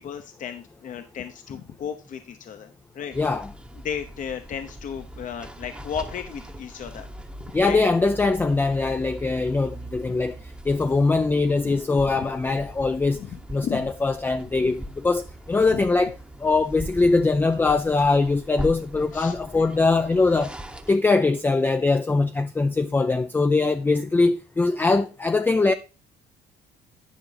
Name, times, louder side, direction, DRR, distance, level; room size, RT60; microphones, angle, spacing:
voice 1, 0.0-3.2 3.8-7.1 7.6-7.8 11.6-11.8 13.2-13.3 13.6-13.9 14.6-14.7 15.7-15.9 19.1-19.3, left 8 dB, 50° left, 0.8 m, -34 dB
sound 1, 3.1-21.0, right 1 dB, 5° right, 0.9 m, -40 dB
voice 2, 3.2-3.5 7.5-10.4 10.7-13.2 13.5-16.2 16.4-20.5 20.9-25.7, left 3 dB, 10° left, 0.4 m, -22 dB
10.0 x 5.1 x 4.0 m
cardioid pair, 110°, 17 cm